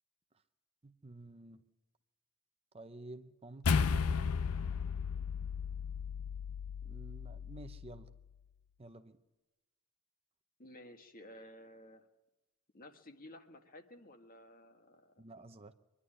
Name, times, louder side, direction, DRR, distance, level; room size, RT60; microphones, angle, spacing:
voice 1, 0.8-1.6 2.7-4.0 4.7-4.8 6.8-8.1 8.8-9.2 15.2-15.7, right 2 dB, 25° right, 9 dB, 0.7 m, -51 dB
sound 1, 3.6-8.2, left 5 dB, 90° left, 0.6 m, -35 dB
voice 2, 10.6-12.1 12.7-15.1, left 1 dB, 40° left, 6 dB, 1.7 m, -54 dB
23.5 x 11.0 x 9.9 m, 1.1 s
head